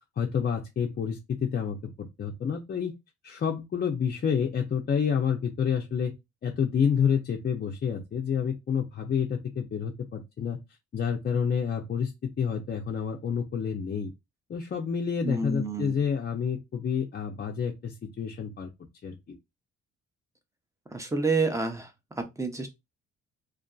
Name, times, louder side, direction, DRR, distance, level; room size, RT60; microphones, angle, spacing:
voice 1, 0.2-2.9 3.2-6.1 6.4-10.6 10.9-14.1 14.5-18.7 19.0-19.2, left 7 dB, 35° left, 0.5 m, -29 dB
voice 2, 15.2-16.0 20.9-21.9 22.2-22.7, right 3 dB, 10° right, 0.6 m, -28 dB
2.6 x 2.3 x 2.3 m
cardioid pair, 90°, 30 cm